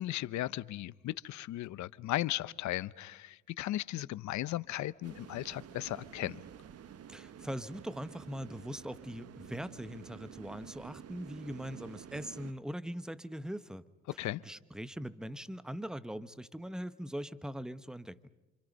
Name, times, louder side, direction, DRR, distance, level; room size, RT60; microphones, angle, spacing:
voice 1, 0.0-6.4 14.2-14.4, left 15 dB, 75° left, 0.8 m, -36 dB
sound 1, 5.0-12.5, right 8 dB, 55° right, 1.3 m, -50 dB
voice 2, 7.1-13.8 14.1-18.3, equal, ahead, 1.1 m, -41 dB
29.0 x 27.0 x 5.4 m
cardioid pair, 95°, 29 cm